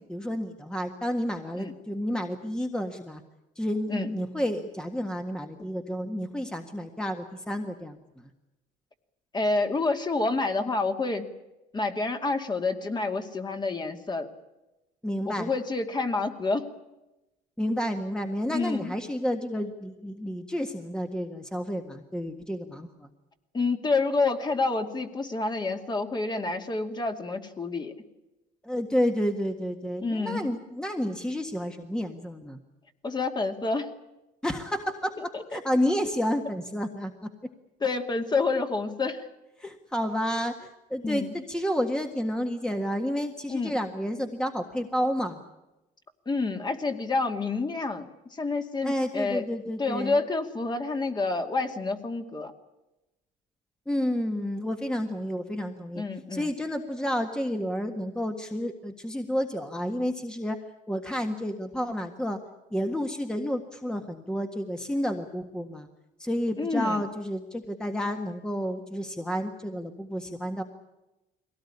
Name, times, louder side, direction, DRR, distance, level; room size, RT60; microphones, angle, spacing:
voice 1, 0.0-3.2 3.5-8.0 15.0-15.5 17.6-23.1 28.6-32.6 34.4-35.2 35.5-37.5 39.6-45.4 48.8-50.2 53.9-56.0 56.3-60.6 60.9-62.4 62.7-65.9 66.2-70.6, equal, 5° left, 5 dB, 1.6 m, -30 dB
voice 2, 9.3-11.3 11.7-14.3 15.3-16.7 18.5-18.9 23.5-27.9 30.0-30.4 33.0-33.9 35.3-35.6 37.8-39.3 41.0-41.3 43.5-43.8 46.3-49.4 49.8-52.5 55.9-56.5 66.6-67.0, left 3 dB, 25° left, 5 dB, 2.4 m, -28 dB
22.5 x 18.0 x 9.9 m, 1.0 s
cardioid pair, 110°, 17 cm